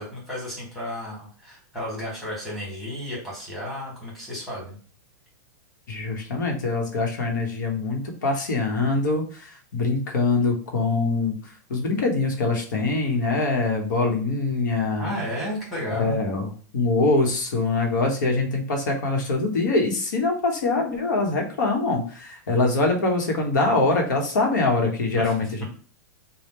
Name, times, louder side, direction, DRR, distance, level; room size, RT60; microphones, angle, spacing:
voice 1, 0.0-4.8 6.2-6.3 15.0-16.2 25.2-25.3, equal, ahead, -5 dB, 1.5 m, -33 dB
voice 2, 5.9-11.3 11.7-15.1 15.9-25.6, left 3 dB, 85° left, 2 dB, 1.1 m, -24 dB
3.5 x 2.3 x 4.2 m, 0.41 s
supercardioid pair, 170°, 10 cm